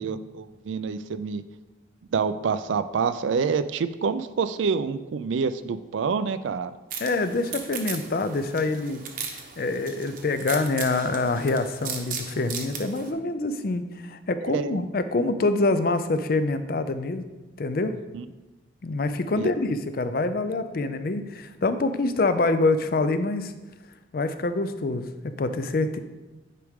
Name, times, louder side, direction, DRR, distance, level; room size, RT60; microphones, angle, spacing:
voice 1, 0.0-1.4 2.1-6.7 14.4-14.8 18.1-18.2 19.4-19.5, right 5 dB, 80° right, 13 dB, 0.4 m, -27 dB
sound 1, 6.9-13.1, right 6 dB, 45° right, 0.8 m, -37 dB
voice 2, 7.0-9.0 9.6-17.3 17.6-17.9 18.8-23.5 24.1-25.1 25.4-26.0, left 2 dB, 50° left, 10 dB, 0.4 m, -25 dB
9.2 x 4.8 x 3.6 m, 1.1 s
head